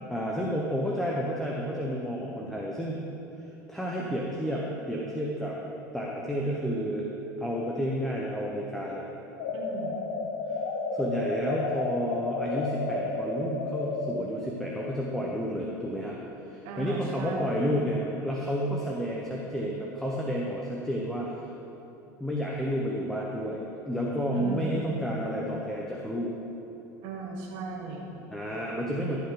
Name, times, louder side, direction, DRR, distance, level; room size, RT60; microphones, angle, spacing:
voice 1, 0.1-3.1 3.7-5.6 5.9-7.1 7.4-9.1 10.5-10.6 10.9-16.2 16.5-21.4 22.2-26.3 28.3-29.2, equal, 5° left, -3 dB, 1.1 m, -31 dB
sound 1, 9.4-14.3, left 3 dB, 75° left, 0.9 m, -32 dB
voice 2, 9.5-10.1 16.6-17.8 24.3-25.1 27.0-28.2, right 4 dB, 65° right, -1 dB, 1.9 m, -37 dB
14.0 x 5.5 x 3.9 m, 2.9 s
hypercardioid pair, 85°, 9 cm